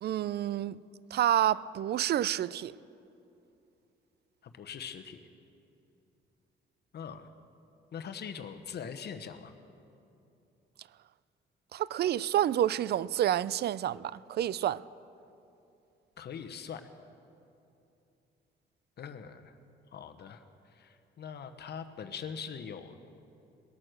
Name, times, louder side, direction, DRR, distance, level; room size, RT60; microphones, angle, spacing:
voice 1, 0.0-0.8 1.1-2.7 11.7-14.8, right 11 dB, 55° right, 0.4 m, -29 dB
voice 2, 4.4-5.2 6.9-7.3 7.9-9.5 16.2-16.9 19.0-19.5 19.9-20.4 20.7-23.0, left 7 dB, 55° left, 1.0 m, -42 dB
20.0 x 8.8 x 6.5 m
cardioid pair, 90°, 20 cm